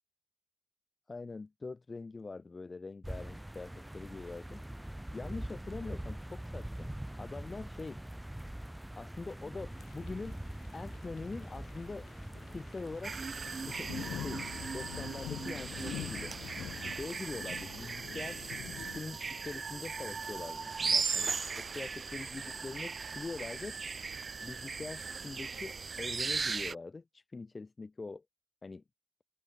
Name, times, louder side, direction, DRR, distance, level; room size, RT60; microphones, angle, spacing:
voice 1, 1.1-4.6 5.1-6.9 7.2-8.0 9.0-10.4 10.7-12.1 12.5-13.2 13.7-14.4 14.7-16.4 16.9-18.4 18.8-23.8 24.4-28.2 28.6-28.8, left 3 dB, 25° left, 1.7 m, -43 dB
sound 1, 3.0-17.1, right 1 dB, 5° right, 4.5 m, -44 dB
sound 2, 9.7-19.0, left 11 dB, 75° left, 3.4 m, -46 dB
sound 3, 13.0-26.7, right 4 dB, 35° right, 1.1 m, -37 dB
open air
cardioid pair, 90°, 0 cm